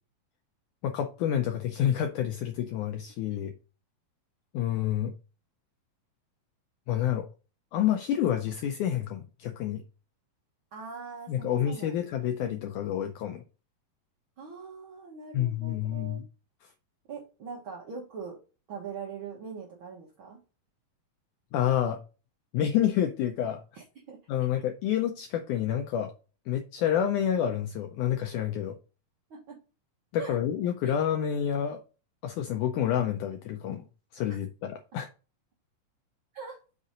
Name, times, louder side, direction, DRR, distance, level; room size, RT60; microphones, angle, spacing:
voice 1, 0.8-3.5 4.5-5.1 6.9-7.3 7.7-9.8 11.3-13.4 15.3-16.2 21.5-22.0 22.5-23.6 24.3-26.1 26.5-28.8 30.1-31.8 32.2-33.8 34.1-35.1, left 10 dB, 85° left, 1.7 m, -28 dB
voice 2, 10.7-12.0 12.4-12.6 14.4-16.2 17.1-18.4 18.7-20.4 23.7-24.2 29.3-29.6 30.2-30.3 30.8-30.9 36.3-36.6, right 5 dB, 70° right, 1.2 m, -42 dB
5.9 x 4.2 x 5.0 m
omnidirectional pair, 4.3 m